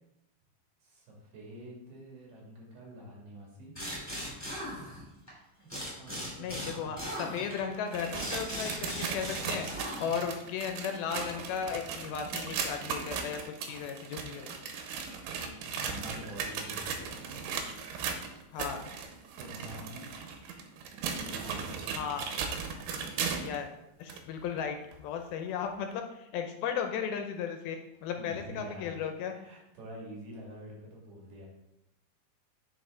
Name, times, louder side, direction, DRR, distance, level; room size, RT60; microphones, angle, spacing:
voice 1, 0.8-3.8 5.6-6.9 15.6-17.4 19.4-20.2 21.0-22.5 28.2-29.1 29.3-31.5, equal, 60° right, -3 dB, 3.7 m, -47 dB
sound 1, 3.7-5.3 5.7-10.4, equal, 5° left, 2.3 m, -39 dB
voice 2, 6.4-9.7 10.0-14.5 18.5-18.9 21.9-22.2 23.4-23.7 24.0-29.3, left 7 dB, 80° left, 5 dB, 2.5 m, -35 dB
sound 2, 7.7-23.6 24.1-24.2 24.9-25.0 25.9-26.0, right 6 dB, 90° right, 2.8 m, -37 dB
9.3 x 5.0 x 3.8 m, 0.85 s
omnidirectional pair, 4.5 m